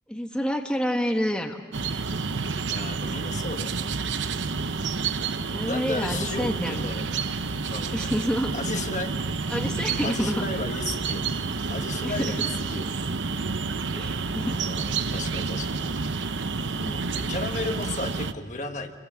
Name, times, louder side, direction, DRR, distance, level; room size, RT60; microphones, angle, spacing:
voice 1, 0.1-1.6 4.8-6.9 7.9-8.5 9.5-10.5 12.0-12.3 13.9-14.6 15.0-15.2 16.7-17.1, equal, 5° left, 3 dB, 1.2 m, -29 dB
sound 1, 1.7-18.3, right 4 dB, 90° right, 0.9 m, -29 dB
voice 2, 2.7-3.7 5.7-7.0 7.7-8.1 8.5-9.5 10.0-11.2 11.7-12.8 14.5-15.7 17.1-18.9, left 3 dB, 40° left, 5 dB, 1.6 m, -34 dB
29.0 x 22.5 x 7.5 m, 1.4 s
head